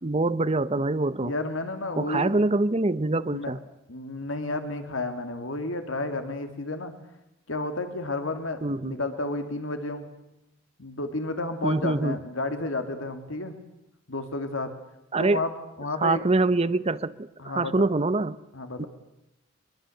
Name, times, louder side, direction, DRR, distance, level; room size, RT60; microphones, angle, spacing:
voice 1, 0.0-1.3 2.0-3.6 8.6-9.0 11.6-12.2 15.1-15.4 16.0-18.4 18.8-18.9, right 2 dB, 30° right, 0.8 m, -25 dB
voice 2, 1.2-2.4 3.3-3.5 3.9-6.9 7.5-10.1 10.8-13.6 14.1-14.7 15.2-15.5 15.8-16.2 17.4-17.9 18.5-18.9, left 2 dB, 75° left, 2.6 m, -31 dB
23.5 x 22.5 x 7.9 m
head